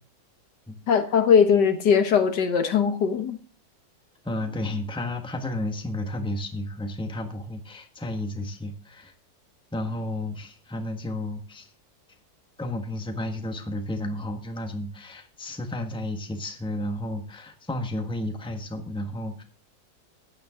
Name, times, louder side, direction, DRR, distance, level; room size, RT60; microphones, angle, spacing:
voice 1, 0.9-3.4, left 6 dB, 70° left, 1.8 m, -20 dB
voice 2, 4.2-9.1 9.7-11.7 12.6-19.4, left 1 dB, 5° left, 1.3 m, -32 dB
14.0 x 9.7 x 3.8 m
omnidirectional pair, 1.9 m